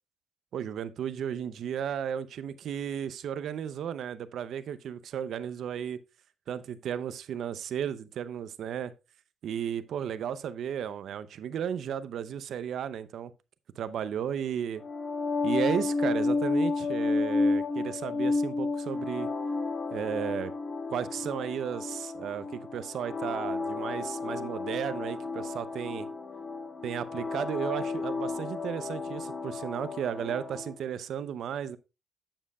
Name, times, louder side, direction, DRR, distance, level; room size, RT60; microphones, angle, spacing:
voice 1, 0.5-6.0 6.5-8.9 9.4-13.3 13.8-14.8 15.4-19.3 19.9-20.5 20.9-26.1 26.8-31.8, right 9 dB, 70° right, 0.6 m, -34 dB
sound 1, 14.8-30.7, left 3 dB, 35° left, 1.4 m, -32 dB
8.8 x 7.3 x 2.3 m
cardioid pair, 90°, 0 cm